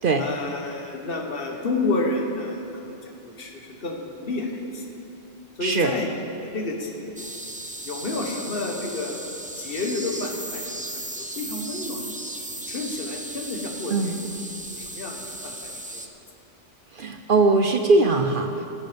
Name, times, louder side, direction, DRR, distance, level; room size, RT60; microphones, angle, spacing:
voice 1, 0.2-5.0 5.6-6.1 6.4-7.3 7.8-9.2 9.5-10.7 11.2-12.0 12.7-14.2 14.7-16.0 18.5-18.7, left 2 dB, 50° left, 1 dB, 1.5 m, -30 dB
voice 2, 5.6-5.9 13.9-14.1 16.9-18.7, right 3 dB, 55° right, 5 dB, 0.7 m, -20 dB
sound 1, 7.2-16.1, right 1 dB, 10° right, 0.3 m, -36 dB
18.0 x 7.9 x 5.1 m, 3.0 s
omnidirectional pair, 1.3 m